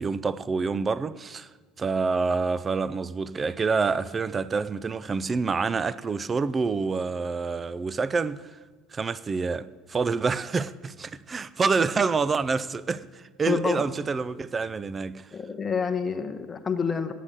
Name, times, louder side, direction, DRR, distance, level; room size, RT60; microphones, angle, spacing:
voice 1, 0.0-1.5 1.8-8.5 8.9-15.3, right 4 dB, 25° right, 0.4 m, -27 dB
voice 2, 13.5-13.9 15.3-17.1, left 5 dB, 25° left, 0.8 m, -28 dB
9.2 x 8.3 x 6.6 m
figure-of-eight pair, 65°, 0 cm